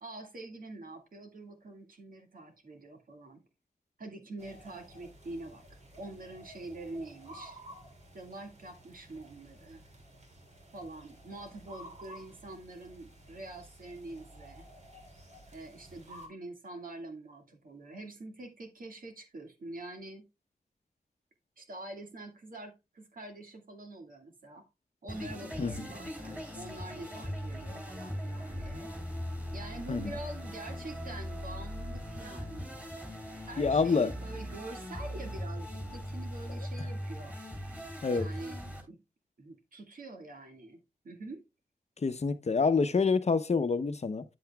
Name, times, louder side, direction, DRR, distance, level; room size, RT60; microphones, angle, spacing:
voice 1, 0.0-3.4 4.0-7.6 8.1-9.8 10.7-14.7 15.5-20.3 21.6-24.6 25.0-28.9 29.5-32.8 33.5-37.4 38.1-39.0 39.4-41.4, right 2 dB, 65° right, 2.0 m, -45 dB
sound 1, 4.4-16.3, right 1 dB, 50° right, 2.6 m, -53 dB
sound 2, 25.1-38.8, equal, 10° right, 3.9 m, -40 dB
voice 2, 33.6-34.1 38.0-38.3 42.0-44.2, left 4 dB, 45° left, 0.8 m, -27 dB
9.5 x 7.8 x 2.3 m
cardioid pair, 65°, 15 cm